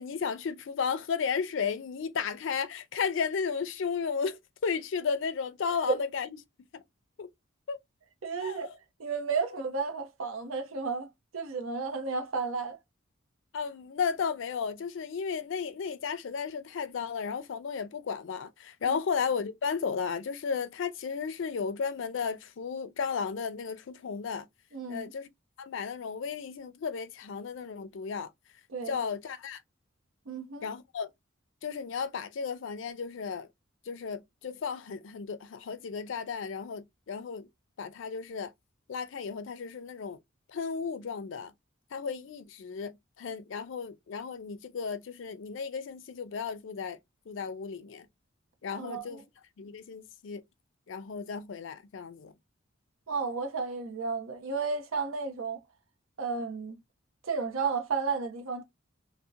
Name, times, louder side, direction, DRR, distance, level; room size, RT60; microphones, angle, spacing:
voice 1, 0.0-6.3 6.7-6.8 7.2-7.3 7.7-7.8 8.4-8.8 13.5-24.5 24.9-25.3 25.6-28.3 28.9-29.6 30.6-31.1 31.6-33.5 33.9-37.5 37.8-38.5 38.9-40.2 40.5-41.5 41.9-47.0 47.3-48.1 48.6-49.2 49.6-50.4 50.9-52.3, left 6 dB, 65° left, 0.4 m, -34 dB
voice 2, 8.2-8.7 9.0-12.8 18.9-19.0 24.7-25.1 28.7-29.0 30.3-30.7 48.7-49.2 53.1-55.6 56.2-56.8 57.3-58.6, right 4 dB, 90° right, 0.7 m, -32 dB
2.7 x 2.1 x 2.3 m
head